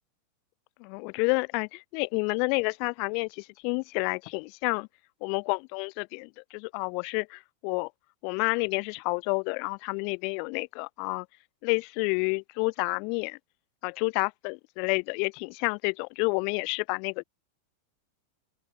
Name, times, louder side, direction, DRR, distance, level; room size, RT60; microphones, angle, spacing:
voice 1, 0.8-4.9 5.2-7.9 8.2-11.3 11.6-13.4 13.8-17.2, left 38 dB, 45° left, 0.4 m, -29 dB
open air
figure-of-eight pair, 90°, 0 cm